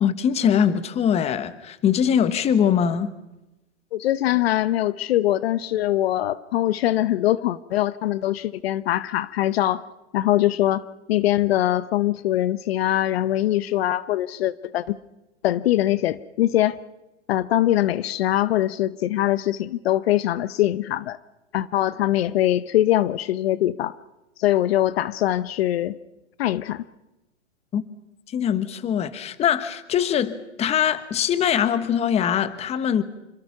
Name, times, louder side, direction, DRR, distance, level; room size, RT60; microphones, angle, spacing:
voice 1, 0.0-3.1 27.7-27.8 28.3-33.0, left 8 dB, 15° left, 1.1 m, -22 dB
voice 2, 3.9-9.8 10.1-15.0 15.4-16.8 17.3-21.2 21.5-23.9 24.4-26.0 26.4-26.8, left 13 dB, 55° left, 0.9 m, -22 dB
27.0 x 25.0 x 5.9 m
hypercardioid pair, 135°, 36 cm